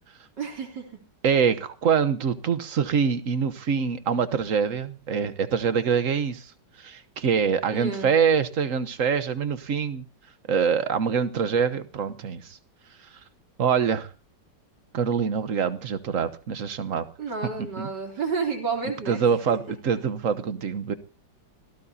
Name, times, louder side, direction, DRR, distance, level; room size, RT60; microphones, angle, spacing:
voice 1, 0.4-0.9 7.7-8.1 17.2-19.2, right 4 dB, 65° right, 4.1 m, -30 dB
voice 2, 1.2-6.5 6.8-10.0 10.5-12.6 13.6-14.1 14.9-17.0 17.8-17.9 19.1-20.9, right 6 dB, 50° right, 1.4 m, -25 dB
25.5 x 17.5 x 2.8 m
omnidirectional pair, 2.0 m